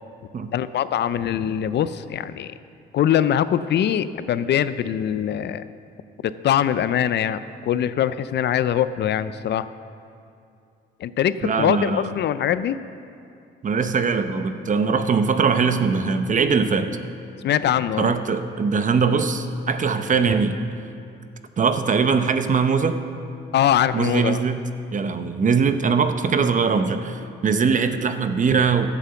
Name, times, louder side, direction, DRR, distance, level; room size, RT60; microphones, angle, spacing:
voice 1, 0.5-2.5 2.9-5.6 6.2-9.7 11.0-12.8 17.4-18.1 23.5-24.4, left 10 dB, 60° left, 14 dB, 0.4 m, -22 dB
voice 2, 11.4-12.1 13.6-17.0 18.0-20.5 21.6-23.0 23.9-24.6 24.9-28.9, right 5 dB, 40° right, 9 dB, 0.8 m, -21 dB
11.5 x 8.3 x 6.9 m, 2.5 s
cardioid pair, 90°, 20 cm